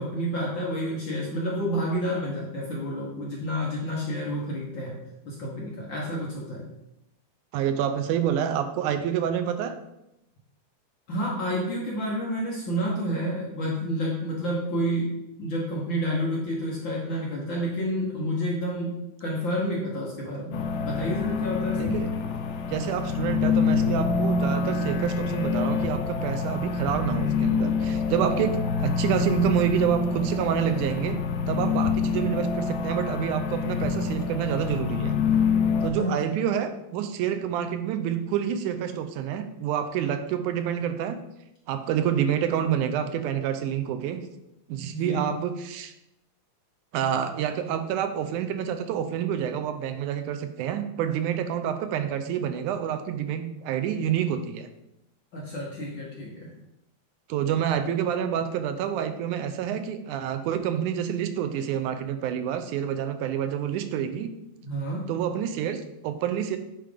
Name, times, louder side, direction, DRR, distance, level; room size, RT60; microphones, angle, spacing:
voice 1, 0.0-6.7 11.1-22.0 36.0-36.4 44.8-45.3 55.3-56.5 64.6-65.1, equal, 55° left, -3 dB, 1.4 m, -30 dB
voice 2, 7.5-9.8 21.8-22.1 22.7-28.6 28.8-31.2 31.5-35.2 35.8-41.2 41.7-44.2 44.7-45.9 46.9-54.7 57.3-64.3 65.1-66.6, right 9 dB, 85° right, 8 dB, 2.1 m, -28 dB
sound 1, 20.5-35.9, left 5 dB, 80° left, 2.1 m, -26 dB
9.0 x 3.4 x 5.0 m, 0.85 s
omnidirectional pair, 3.5 m